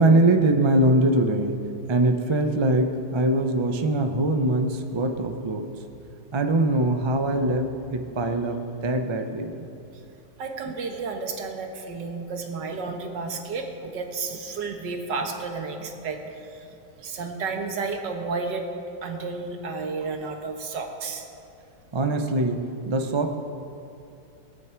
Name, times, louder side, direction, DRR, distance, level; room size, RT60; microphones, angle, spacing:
voice 1, 0.0-1.5 1.9-5.7 6.3-8.6 8.8-9.5 21.9-23.4, right 1 dB, 50° right, 5 dB, 0.3 m, -22 dB
voice 2, 10.4-16.7 17.0-18.6 19.0-21.3, right 4 dB, 75° right, 3 dB, 1.9 m, -32 dB
21.0 x 9.1 x 4.6 m, 2.7 s
omnidirectional pair, 1.9 m